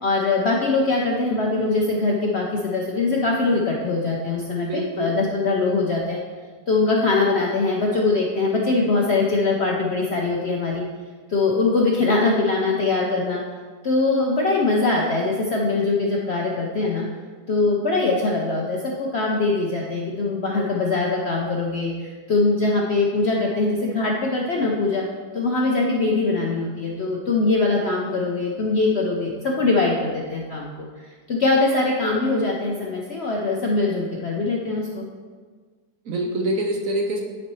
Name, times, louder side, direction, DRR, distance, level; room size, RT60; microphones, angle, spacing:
voice 1, 0.0-6.2 6.7-10.8 11.3-13.4 13.8-17.1 17.5-25.0 25.3-30.9 31.3-35.1, left 3 dB, 60° left, -2 dB, 0.7 m, -22 dB
voice 2, 4.6-5.1 36.0-37.2, right 1 dB, 60° right, 1 dB, 1.0 m, -25 dB
10.5 x 4.2 x 3.1 m, 1.5 s
omnidirectional pair, 1.8 m